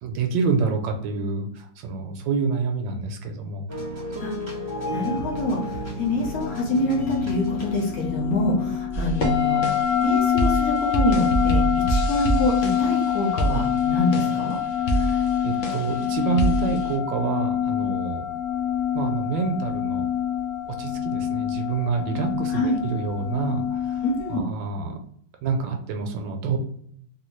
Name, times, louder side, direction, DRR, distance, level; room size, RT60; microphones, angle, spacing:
voice 1, 0.0-4.1 14.8-18.3 18.9-20.1 20.7-25.0 25.4-26.6, right 5 dB, 75° right, 4 dB, 1.3 m, -28 dB
sound 1, 3.7-9.8 10.4-10.5, equal, 25° right, 0.7 m, -34 dB
voice 2, 4.9-9.7 10.0-11.6 11.9-14.6 22.5-22.8 24.0-24.5, left 1 dB, 55° left, -3 dB, 1.2 m, -26 dB
sound 2, 6.4-24.4, left 9 dB, 70° left, 1.9 m, -26 dB
sound 3, 8.9-17.0, right 2 dB, 90° left, 0.6 m, -28 dB
3.5 x 2.6 x 3.1 m, 0.66 s
omnidirectional pair, 2.1 m